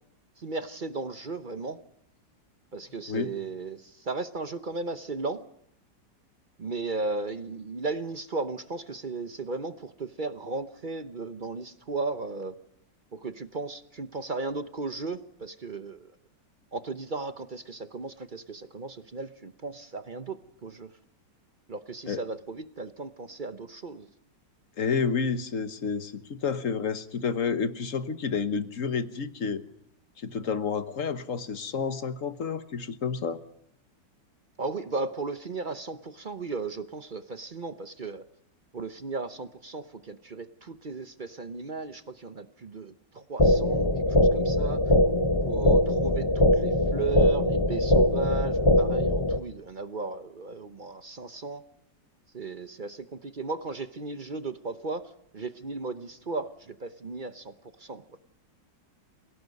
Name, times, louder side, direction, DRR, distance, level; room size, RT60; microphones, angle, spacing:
voice 1, 0.4-1.8 2.7-5.4 6.6-12.6 13.1-16.1 16.7-20.9 21.7-24.1 34.6-38.2 38.7-44.8 45.5-51.6 52.3-57.5 57.8-58.0, right 3 dB, 40° right, 10 dB, 0.7 m, -35 dB
voice 2, 24.8-29.6 30.2-33.4, left 5 dB, 50° left, 11 dB, 1.4 m, -30 dB
sound 1, 43.4-49.4, left 1 dB, 20° left, 0.7 m, -22 dB
28.5 x 17.5 x 5.3 m, 0.73 s
omnidirectional pair, 1.9 m